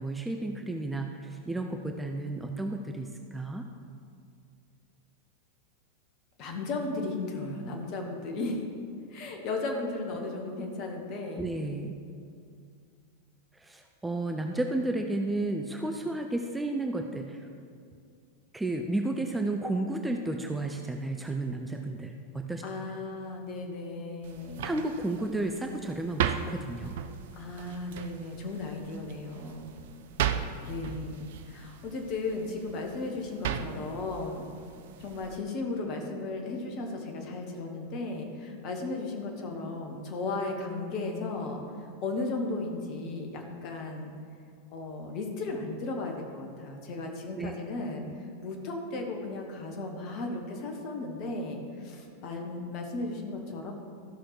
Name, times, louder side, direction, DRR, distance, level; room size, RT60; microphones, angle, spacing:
voice 1, 0.0-3.7 11.4-12.0 13.6-17.5 18.5-22.6 24.6-26.9 47.4-47.5, right 2 dB, 5° right, 3 dB, 0.6 m, -32 dB
voice 2, 6.4-8.6 9.1-11.5 22.6-24.7 27.3-29.7 30.6-34.5 35.0-41.6 42.0-44.1 44.7-53.7, left 3 dB, 40° left, 2 dB, 1.5 m, -35 dB
sound 1, 24.2-35.4, right 9 dB, 55° right, 0.5 m, -37 dB
13.5 x 5.9 x 4.9 m, 2.3 s
figure-of-eight pair, 90°, 0 cm